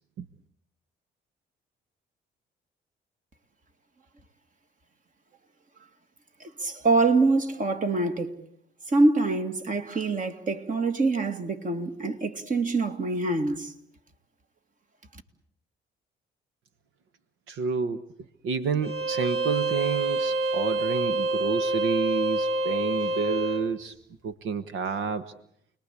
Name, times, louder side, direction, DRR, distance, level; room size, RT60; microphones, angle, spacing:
voice 1, 6.6-8.3 8.9-13.7, right 3 dB, 40° right, 2.4 m, -25 dB
voice 2, 17.5-18.0 18.4-23.9 24.2-25.2, right 5 dB, 85° right, 1.3 m, -29 dB
Bowed string instrument, 18.8-23.6, right 2 dB, 60° right, 5.3 m, -27 dB
29.0 x 20.5 x 8.4 m
cardioid pair, 90°, 20 cm